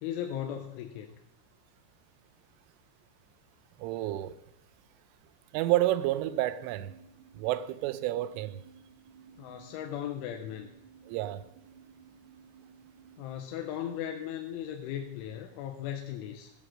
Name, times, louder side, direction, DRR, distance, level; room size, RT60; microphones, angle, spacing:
voice 1, 0.0-1.2 9.4-10.7 13.2-16.5, left 10 dB, 80° left, 3.1 m, -37 dB
voice 2, 3.8-4.4 5.5-6.9 7.4-8.6 11.1-11.4, right 15 dB, 85° right, 3.1 m, -30 dB
sound 1, 6.5-13.4, right 7 dB, 60° right, 4.5 m, -56 dB
16.0 x 7.9 x 6.3 m
omnidirectional pair, 5.8 m